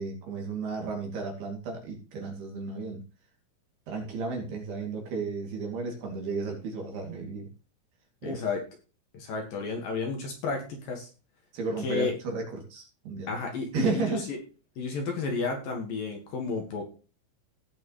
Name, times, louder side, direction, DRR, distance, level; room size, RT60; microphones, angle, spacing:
voice 1, 0.0-3.0 3.9-7.5 8.2-8.5 11.5-13.3 13.7-14.3, right 4 dB, 60° right, 1 dB, 4.4 m, -33 dB
voice 2, 8.2-8.6 9.1-11.1 11.8-12.2 13.3-14.4 14.8-16.9, left 4 dB, 60° left, 2 dB, 3.1 m, -32 dB
17.5 x 6.2 x 3.2 m, 0.33 s
omnidirectional pair, 5.3 m